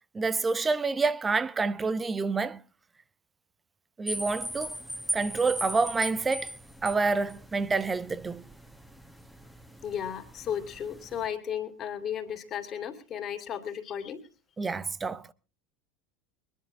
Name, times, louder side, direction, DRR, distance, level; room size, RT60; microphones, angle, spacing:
voice 1, 0.1-2.6 4.0-4.7 5.1-6.5 6.8-8.4 14.6-15.2, right 4 dB, 20° right, 0.8 m, -28 dB
sound 1, 4.1-11.3, right 1 dB, ahead, 1.5 m, -39 dB
voice 2, 9.8-14.2, left 9 dB, 40° left, 2.6 m, -34 dB
23.0 x 10.5 x 3.8 m
figure-of-eight pair, 75°, 0 cm